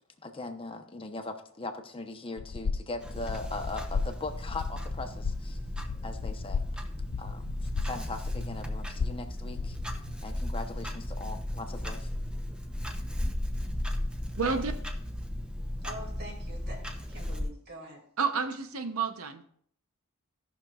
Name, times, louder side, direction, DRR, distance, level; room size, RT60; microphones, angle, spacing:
voice 1, 0.2-5.6 6.0-6.6 7.2-7.4 7.8-9.8 10.2-12.1, left 3 dB, 25° left, 0.9 m, -39 dB
sound 1, 2.4-10.1, left 5 dB, 55° left, 0.4 m, -35 dB
Clock, 3.0-17.5, left 1 dB, 5° right, 0.7 m, -35 dB
voice 2, 14.4-14.7 18.2-19.5, right 5 dB, 85° right, 0.8 m, -30 dB
voice 3, 15.8-18.1, right 1 dB, 50° right, 2.6 m, -45 dB
17.0 x 5.9 x 2.4 m
head